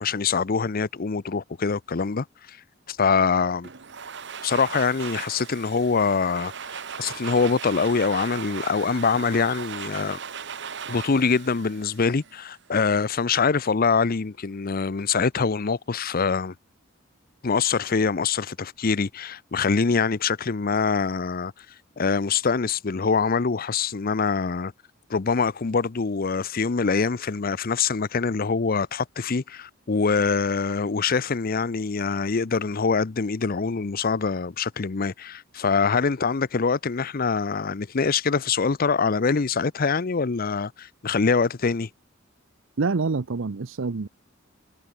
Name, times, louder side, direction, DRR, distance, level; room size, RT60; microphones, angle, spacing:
voice 1, 0.0-2.6 2.9-3.7 4.4-10.2 10.9-16.5 17.4-21.5 22.0-24.7 25.1-41.9, left 5 dB, 50° left, 0.6 m, -24 dB
Domestic sounds home sounds, 3.6-12.6, right 7 dB, 60° right, 1.4 m, -38 dB
voice 2, 42.8-44.1, right 4 dB, 80° right, 0.7 m, -26 dB
head